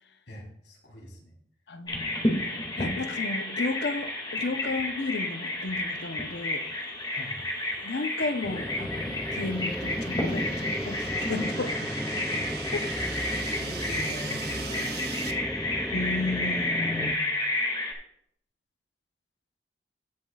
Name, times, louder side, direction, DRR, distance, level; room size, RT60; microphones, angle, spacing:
voice 1, 0.3-1.4 7.1-7.4 11.5-12.9 13.2-15.0, equal, 90° left, -1 dB, 3.5 m, -43 dB
voice 2, 1.7-2.1 2.8-6.6 7.8-11.7 15.9-17.5, left 3 dB, 70° left, 9 dB, 0.7 m, -33 dB
Bird vocalization bird call bird song, 1.9-17.9, left 1 dB, 25° left, 2.1 m, -31 dB
sound 1, 6.3-15.3, right 7 dB, 65° right, 0.9 m, -42 dB
sound 2, 8.4-17.2, equal, 5° left, 0.4 m, -35 dB
17.0 x 7.4 x 2.4 m, 0.67 s
head